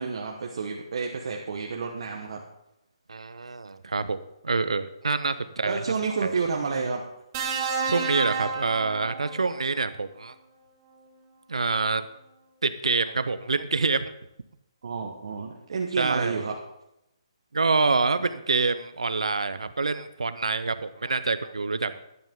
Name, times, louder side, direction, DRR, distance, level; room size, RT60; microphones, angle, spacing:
voice 1, 0.0-2.4 5.7-7.0 14.8-16.5, right 5 dB, 65° right, 1 dB, 1.2 m, -30 dB
voice 2, 3.1-4.2 4.4-5.8 6.2-6.3 7.8-10.3 11.5-12.1 12.6-14.1 16.0-16.5 17.5-22.0, right 4 dB, 90° right, 12 dB, 0.6 m, -26 dB
sound 1, 7.3-9.6 10.9-11.1, right 5 dB, 35° right, 1.6 m, -30 dB
12.5 x 10.5 x 3.7 m, 0.86 s
hypercardioid pair, 150°, 3 cm